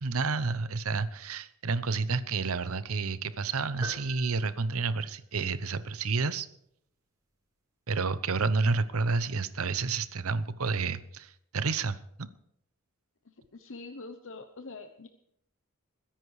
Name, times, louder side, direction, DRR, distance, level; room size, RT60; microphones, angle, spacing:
voice 1, 0.0-6.5 7.9-12.3, right 4 dB, 75° right, 15 dB, 0.8 m, -30 dB
sound 1, 3.8-5.6, right 1 dB, 15° right, 3.1 m, -45 dB
voice 2, 13.2-15.1, left 3 dB, 60° left, 7 dB, 1.0 m, -44 dB
21.5 x 10.5 x 4.8 m, 0.72 s
head